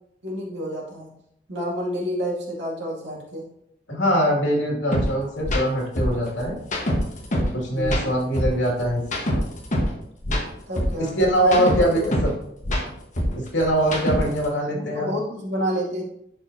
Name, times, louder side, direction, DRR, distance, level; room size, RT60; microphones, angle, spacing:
voice 1, 0.2-1.1 1.5-3.5 7.7-8.2 10.7-12.1 14.7-16.0, equal, 75° right, -4 dB, 2.4 m, -29 dB
voice 2, 3.9-6.6 7.4-9.0 11.0-12.3 13.3-15.1, equal, 85° left, -2 dB, 2.4 m, -22 dB
sound 1, 4.9-5.1 5.4-5.6 6.0-7.5 7.8-9.9 10.2-12.3 12.6-14.5, equal, 45° left, 1.4 m, -25 dB
11.0 x 4.5 x 2.8 m, 0.76 s
head